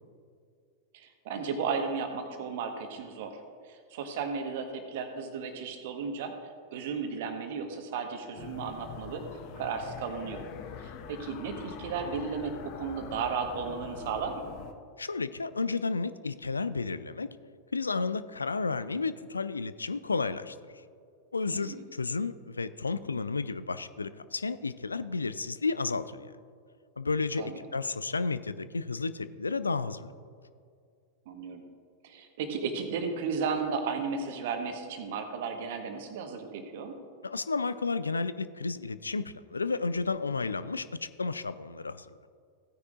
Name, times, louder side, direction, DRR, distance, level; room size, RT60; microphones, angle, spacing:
voice 1, 0.9-3.4 3.6-6.3 6.7-9.2 9.6-10.4 10.8-14.5 21.5-21.9 27.4-27.6 31.3-31.6 32.0-37.0, right 5 dB, 55° right, 5 dB, 1.2 m, -34 dB
sound 1, 8.4-14.7, left 8 dB, 40° left, 0.7 m, -44 dB
voice 2, 15.0-17.3 17.7-20.6 21.3-26.3 27.0-30.1 37.2-42.1, left 4 dB, 75° left, 14 dB, 0.3 m, -32 dB
16.0 x 9.6 x 2.5 m, 2.3 s
figure-of-eight pair, 90°, 0 cm